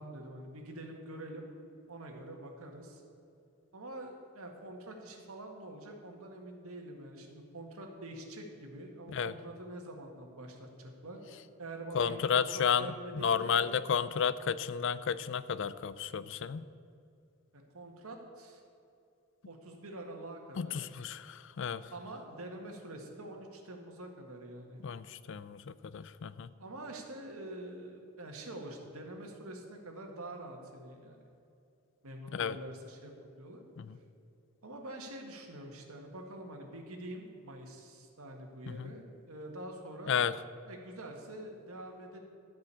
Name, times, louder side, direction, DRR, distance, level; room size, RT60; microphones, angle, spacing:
voice 1, 0.0-1.4 1.9-3.0 3.7-11.2 11.6-13.6 17.5-18.6 19.5-20.8 21.9-24.8 26.6-31.2 32.0-33.6 34.6-40.2 40.7-42.2, right 1 dB, 75° right, 2 dB, 1.8 m, -46 dB
voice 2, 11.9-16.6 20.6-21.9 24.8-26.5 32.3-32.6 33.8-34.0 38.7-38.9 40.1-40.3, left 7 dB, 55° left, 16 dB, 0.4 m, -32 dB
14.0 x 5.3 x 8.4 m, 2.6 s
head